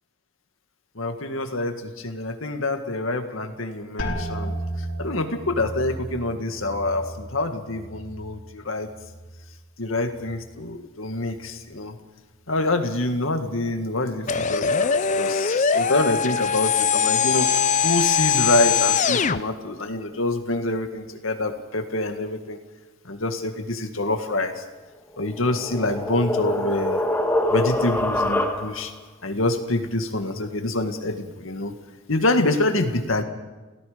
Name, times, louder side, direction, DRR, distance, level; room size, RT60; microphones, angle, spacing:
voice 1, 1.0-4.6 5.0-8.9 9.8-12.0 12.5-22.6 23.1-24.6 25.2-27.0 27.5-28.9 29.2-31.7 32.1-33.2, left 2 dB, 85° left, 6 dB, 2.1 m, -26 dB
sound 1, 4.0-9.6 9.9-10.6 11.2-11.6, right 1 dB, 65° left, 4.2 m, -35 dB
sound 2, 14.3-19.4, left 6 dB, 35° left, 0.6 m, -21 dB
sound 3, 25.2-29.0, left 1 dB, 10° left, 1.7 m, -25 dB
29.0 x 17.5 x 5.2 m, 1.2 s
head